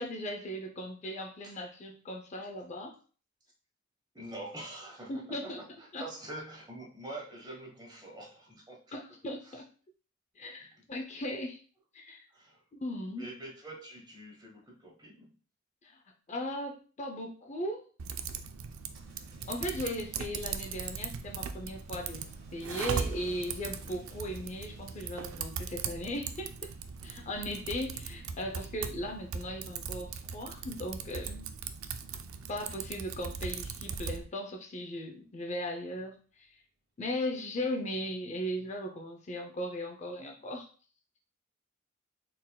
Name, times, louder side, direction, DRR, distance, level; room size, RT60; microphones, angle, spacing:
voice 1, 0.0-2.9 5.1-5.6 5.9-6.0 8.9-9.7 10.4-11.6 11.9-12.3 12.7-13.3 15.8-16.0 16.3-17.8 19.5-26.5 27.0-31.5 32.5-36.5 37.0-40.7, equal, 35° left, 2 dB, 0.5 m, -37 dB
voice 2, 4.1-8.8 9.4-9.6 12.3-12.6 13.2-15.3, right 1 dB, 20° right, -1 dB, 1.1 m, -45 dB
Typing, 18.0-34.2, right 6 dB, 90° right, 0.4 m, -39 dB
sound 1, 18.8-29.6 29.8-34.0, right 1 dB, 70° right, 1.4 m, -57 dB
4.2 x 3.7 x 2.2 m, 0.39 s
head